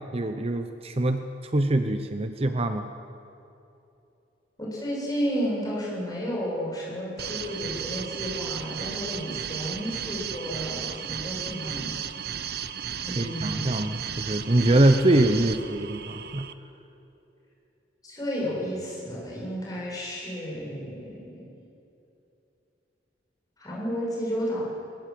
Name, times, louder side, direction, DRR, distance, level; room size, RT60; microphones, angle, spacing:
voice 1, 0.1-2.9 13.1-16.5, right 1 dB, 35° right, 7 dB, 0.8 m, -24 dB
voice 2, 4.6-11.9 13.0-13.8 18.0-21.5 23.6-24.6, equal, 20° left, -5 dB, 7.5 m, -32 dB
sound 1, 7.2-16.5, right 8 dB, 60° right, 0.9 m, -34 dB
21.0 x 20.0 x 7.8 m, 2.8 s
head